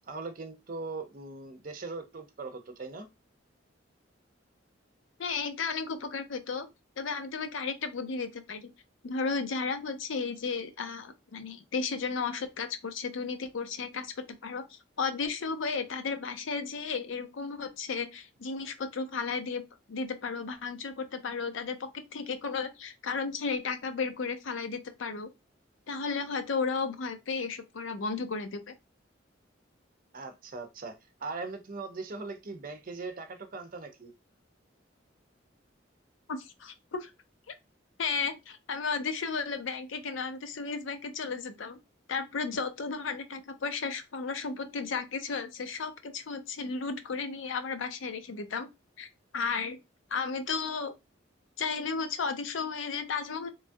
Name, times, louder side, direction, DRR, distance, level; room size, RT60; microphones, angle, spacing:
voice 1, 0.1-3.1 30.1-31.0 31.2-34.1, right 3 dB, 45° right, 0.6 m, -40 dB
voice 2, 5.2-6.7 7.0-8.7 9.0-14.1 14.4-19.6 19.9-25.3 25.9-28.7 36.3-37.1 38.0-41.8 42.1-48.7 49.0-49.1 49.3-49.8 50.1-50.9 51.6-53.5, left 5 dB, 85° left, 0.5 m, -34 dB
3.1 x 2.3 x 2.6 m
head